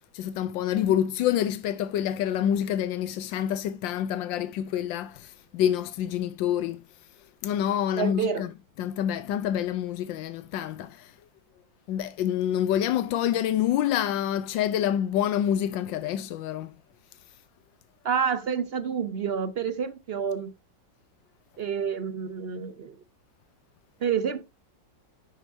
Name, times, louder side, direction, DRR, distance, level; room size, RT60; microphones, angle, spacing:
voice 1, 0.1-6.8 7.4-8.5 8.8-11.1 11.9-16.8, left 10 dB, 90° left, 1.4 m, -27 dB
voice 2, 8.0-8.4 18.0-20.5 21.6-22.9 24.0-24.4, right 7 dB, 60° right, 0.6 m, -28 dB
10.5 x 8.1 x 2.7 m
omnidirectional pair, 2.0 m